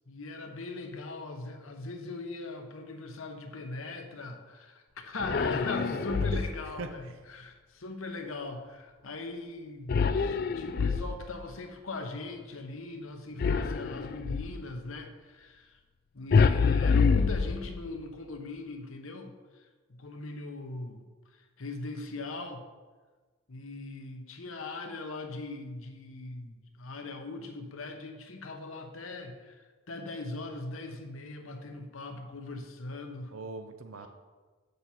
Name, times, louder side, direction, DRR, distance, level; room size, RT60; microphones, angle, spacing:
voice 1, 0.1-15.8 16.1-21.0 21.3-22.6 23.5-33.3, left 2 dB, 85° left, 5 dB, 1.0 m, -40 dB
sound 1, 5.2-6.7 9.9-11.4 13.4-14.6 16.3-18.0, left 5 dB, 45° left, 0.3 m, -26 dB
voice 2, 5.3-6.4 6.8-6.9 33.3-34.1, right 3 dB, 80° right, 7 dB, 0.7 m, -40 dB
8.0 x 6.7 x 4.3 m, 1.3 s
head